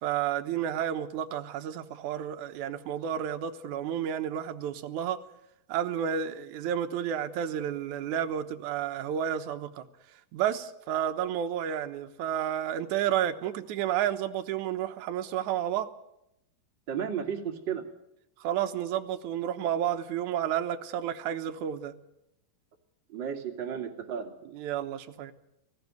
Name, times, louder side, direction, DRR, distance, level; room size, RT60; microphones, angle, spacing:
voice 1, 0.0-5.2 5.7-9.9 10.3-15.9 18.4-21.9 23.8-23.9 24.5-25.3, right 10 dB, 65° right, 6 dB, 2.0 m, -31 dB
voice 2, 16.9-17.8 23.1-24.3, right 8 dB, 35° right, 2 dB, 2.2 m, -33 dB
19.5 x 15.5 x 9.5 m, 0.83 s
omnidirectional pair, 4.8 m